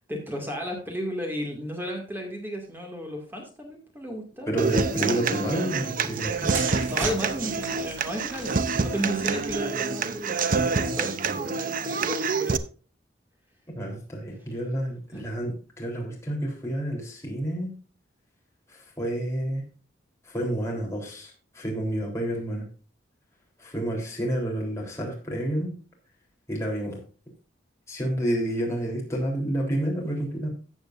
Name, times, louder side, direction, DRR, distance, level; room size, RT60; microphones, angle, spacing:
voice 1, 0.1-4.8 6.9-12.6 15.1-15.2, equal, 10° right, 1 dB, 2.2 m, -34 dB
voice 2, 4.5-6.6 13.8-17.7 18.7-19.6 20.3-22.7 23.6-25.7 26.5-27.0 27.9-30.5, right 1 dB, 15° left, -2 dB, 3.6 m, -29 dB
Human voice / Acoustic guitar, 4.6-12.6, right 4 dB, 45° right, 0.6 m, -27 dB
sound 1, 6.2-9.9 10.7-11.0, right 3 dB, 75° right, 4.4 m, -38 dB
14.0 x 8.0 x 2.6 m, 0.37 s
head